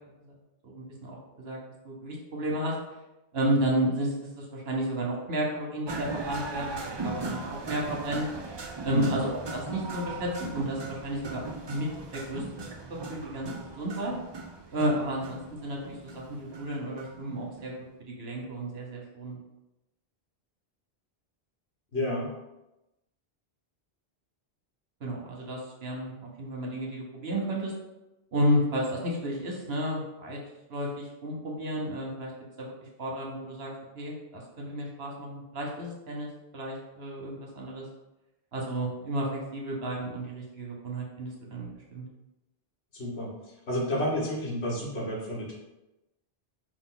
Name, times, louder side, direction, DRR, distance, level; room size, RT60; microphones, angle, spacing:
voice 1, 0.6-1.6 1.8-2.7 3.3-8.3 8.8-12.4 12.9-14.1 14.7-17.7 18.1-19.4 25.0-26.1 26.4-27.7 28.3-30.4 30.7-32.3 32.6-32.7 33.0-37.9 38.5-42.0, right 1 dB, 75° right, -1 dB, 1.3 m, -32 dB
sound 1, 5.9-17.7, right 3 dB, 45° right, 0.3 m, -38 dB
voice 2, 21.9-22.3 42.9-43.3 43.7-45.5, left 1 dB, 90° left, -4 dB, 1.6 m, -30 dB
5.3 x 2.6 x 3.9 m, 0.95 s
omnidirectional pair, 1.1 m